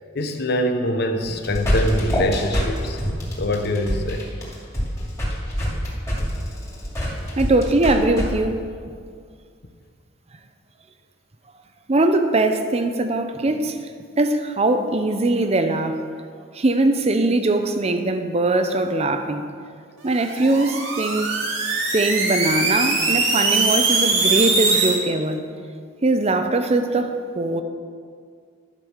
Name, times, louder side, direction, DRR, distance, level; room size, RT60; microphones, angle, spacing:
voice 1, 0.1-3.0 3.4-4.3 27.5-27.6, left 1 dB, 55° left, 6 dB, 0.8 m, -24 dB
sound 1, 1.2-8.3, equal, 15° left, 2.4 m, -24 dB
voice 2, 7.4-8.6 11.9-13.8 14.2-16.0 16.5-19.5 20.0-21.4 21.9-25.4 26.0-27.6, right 2 dB, 35° right, 8 dB, 0.6 m, -21 dB
sound 2, 20.1-25.0, right 3 dB, 75° right, 1.9 m, -21 dB
10.5 x 5.4 x 6.5 m, 2.1 s
head